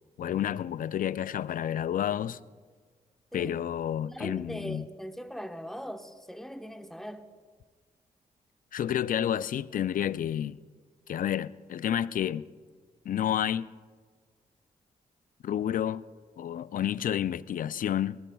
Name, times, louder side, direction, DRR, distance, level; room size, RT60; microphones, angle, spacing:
voice 1, 0.2-2.4 3.3-4.8 8.7-10.6 11.1-12.5 13.0-13.7 15.4-16.0 16.4-18.2, left 10 dB, 65° left, 0.4 m, -30 dB
voice 2, 4.0-7.3, equal, ahead, 1.2 m, -40 dB
19.5 x 18.0 x 2.3 m
supercardioid pair, 50°, 15 cm